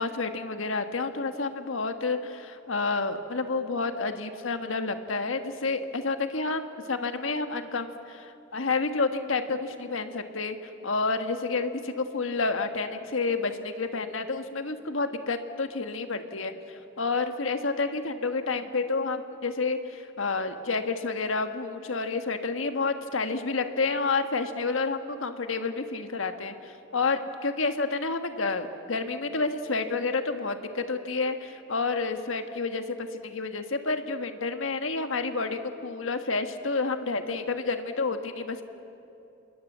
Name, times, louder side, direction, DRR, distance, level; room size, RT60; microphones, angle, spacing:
voice 1, 0.0-10.6 10.8-38.6, left 3 dB, 80° left, 7 dB, 1.5 m, -29 dB
26.5 x 20.5 x 7.4 m, 2.8 s
head